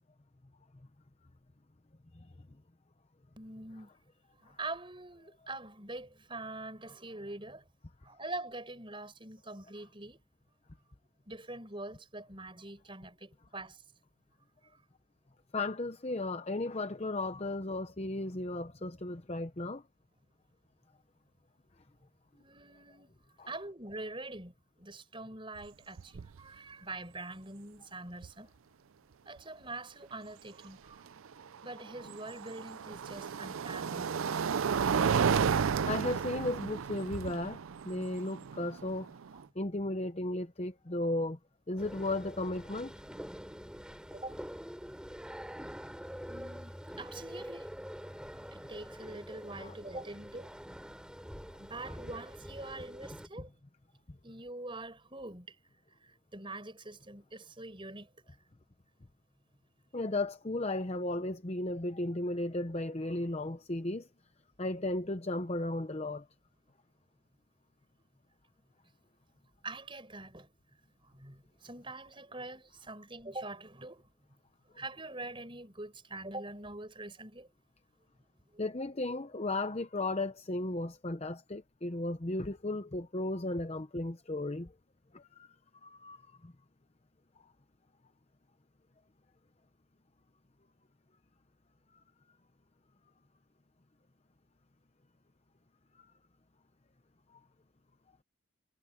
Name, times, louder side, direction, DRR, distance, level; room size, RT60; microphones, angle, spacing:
voice 1, 3.4-3.9 4.4-7.6 8.0-10.2 11.3-13.8 18.8-18.9 22.3-23.2 23.5-28.5 29.3-31.0 31.6-34.2 39.3-39.4 44.1-44.4 46.3-47.7 48.5-50.5 51.6-53.5 54.2-55.6 56.0-58.1 69.6-70.5 71.1-74.0 74.7-77.5 78.5-78.6, right 2 dB, 25° right, 5.9 m, -44 dB
voice 2, 15.5-19.8 23.4-23.5 35.9-37.6 37.8-39.1 39.6-41.4 41.7-42.9 49.6-49.7 59.9-64.1 64.6-66.2 78.6-84.7 85.1-85.5 85.8-86.2 86.4-86.5, left 2 dB, 30° left, 0.8 m, -35 dB
sound 1, 25.6-25.7 26.0-26.4 28.2-28.3 31.3-39.4, right 6 dB, 75° right, 0.4 m, -32 dB
sound 2, 41.8-53.3, equal, 5° right, 5.1 m, -45 dB
head